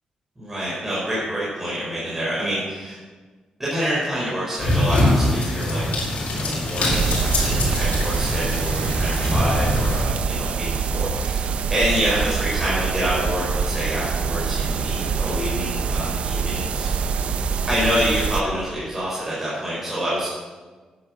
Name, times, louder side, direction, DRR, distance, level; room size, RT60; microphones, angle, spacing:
voice 1, 0.4-3.0 3.6-17.1 17.7-20.3, equal, 15° right, -8 dB, 4.7 m, -27 dB
sound 1, 4.6-10.1, left 1 dB, 75° left, 3.9 m, -23 dB
sound 2, 6.9-18.4, right 5 dB, 60° right, 0.7 m, -25 dB
10.5 x 10.0 x 6.3 m, 1.3 s
wide cardioid pair, 135°, 2 cm